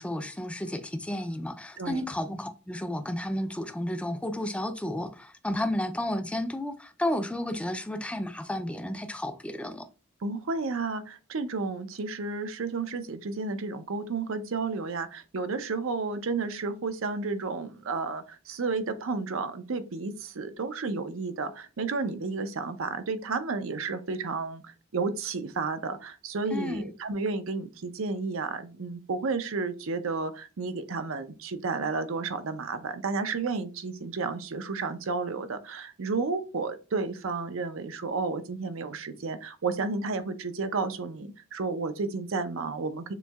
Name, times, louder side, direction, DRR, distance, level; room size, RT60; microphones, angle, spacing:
voice 1, 0.0-9.9 26.5-26.9, left 1 dB, 5° left, 0.4 m, -32 dB
voice 2, 10.2-43.1, right 4 dB, 70° right, 0.6 m, -32 dB
6.8 x 2.7 x 2.3 m
head